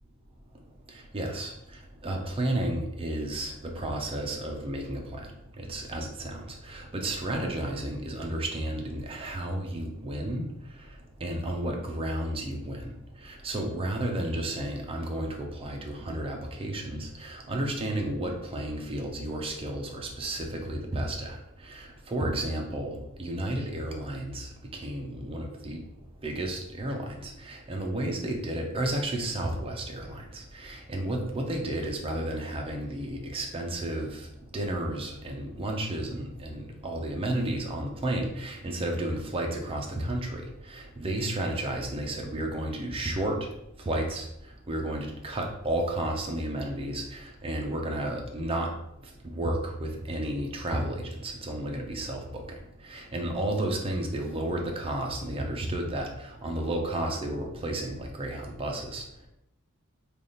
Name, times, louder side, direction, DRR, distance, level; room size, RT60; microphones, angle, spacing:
voice 1, 0.5-59.3, right 1 dB, 25° right, 1 dB, 0.6 m, -32 dB
3.4 x 2.4 x 3.9 m, 0.78 s
head